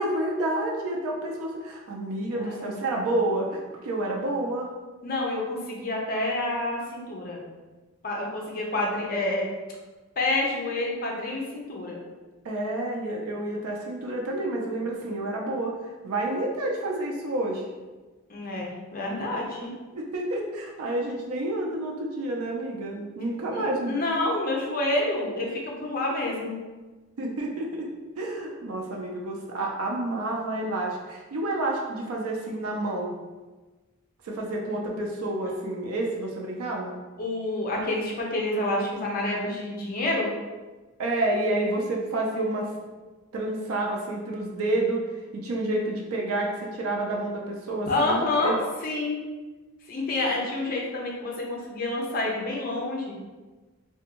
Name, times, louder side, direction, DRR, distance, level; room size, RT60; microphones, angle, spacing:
voice 1, 0.0-4.7 12.4-17.7 19.9-23.9 27.2-27.9 28.2-33.1 34.2-36.9 41.0-42.7 43.3-45.0 45.3-48.6, right 2 dB, 75° right, -1 dB, 0.4 m, -29 dB
voice 2, 2.3-2.7 5.0-7.4 8.0-9.5 10.2-12.0 18.3-19.7 23.9-26.6 37.2-40.3 47.9-48.5 48.8-49.2 49.9-53.2, left 2 dB, 40° left, -1 dB, 0.5 m, -28 dB
2.5 x 2.2 x 2.8 m, 1.2 s
head